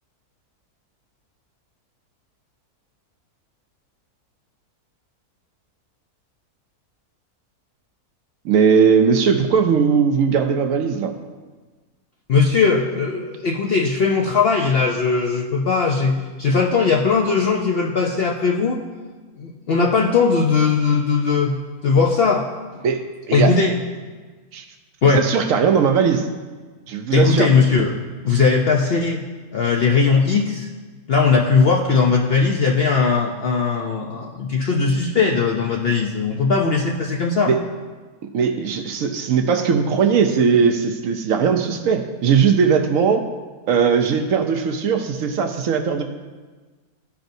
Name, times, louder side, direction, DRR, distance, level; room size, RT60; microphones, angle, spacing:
voice 1, 8.4-11.1 22.8-23.5 24.5-24.7 25.0-26.3 26.9-27.5 28.3-28.4 37.5-37.6 38.3-43.2 43.7-46.0, right 6 dB, 70° right, 5 dB, 1.0 m, -19 dB
voice 2, 12.3-18.8 19.4-21.6 21.8-22.5 22.7-22.8 23.3-23.7 25.0-25.2 27.1-27.9 28.2-29.2 29.5-30.7 31.1-37.5, left 4 dB, 60° left, 0 dB, 0.6 m, -19 dB
14.0 x 5.1 x 2.6 m, 1.4 s
omnidirectional pair, 1.6 m